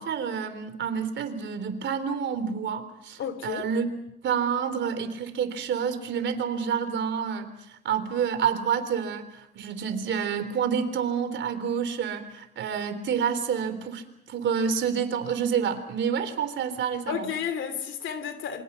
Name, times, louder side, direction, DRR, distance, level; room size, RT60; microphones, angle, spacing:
voice 1, 0.0-3.9 4.2-9.3 9.5-17.3, right 7 dB, 70° right, 3.7 m, -28 dB
voice 2, 3.2-3.6 17.1-18.6, left 7 dB, 75° left, 3.1 m, -32 dB
27.5 x 24.5 x 5.9 m
cardioid pair, 90°, 20 cm